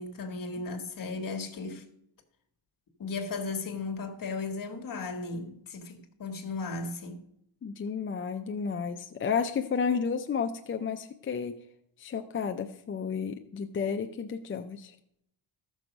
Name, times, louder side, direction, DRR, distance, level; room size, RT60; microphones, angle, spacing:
voice 1, 0.0-1.8 3.0-7.2, left 3 dB, 45° left, 1.5 m, -36 dB
voice 2, 7.6-11.6 12.0-14.9, left 6 dB, 30° left, 0.4 m, -32 dB
14.0 x 6.2 x 5.2 m
cardioid pair, 140°, 48 cm